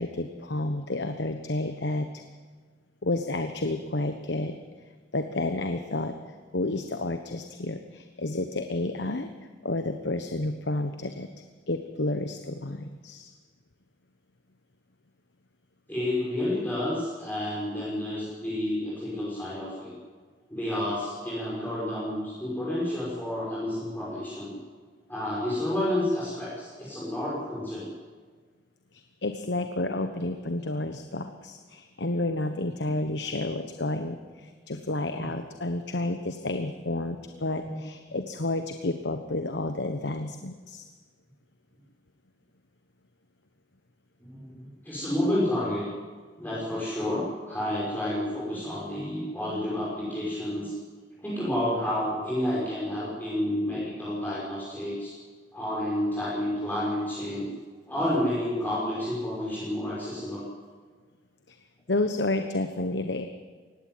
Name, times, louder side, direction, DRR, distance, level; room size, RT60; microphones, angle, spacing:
voice 1, 0.0-2.1 3.0-4.6 5.1-6.1 6.5-9.3 9.6-11.3 11.7-13.3 28.9-40.8 61.5-61.6 61.9-63.3, left 2 dB, 80° left, 7 dB, 1.2 m, -30 dB
voice 2, 15.9-19.9 20.5-24.6 25.1-27.9 35.1-35.3 37.6-37.8 44.2-45.9 46.4-50.7 51.2-55.1 55.5-57.5 57.9-60.5, left 1 dB, 10° left, -8 dB, 5.9 m, -30 dB
19.0 x 16.0 x 9.6 m, 1.5 s
head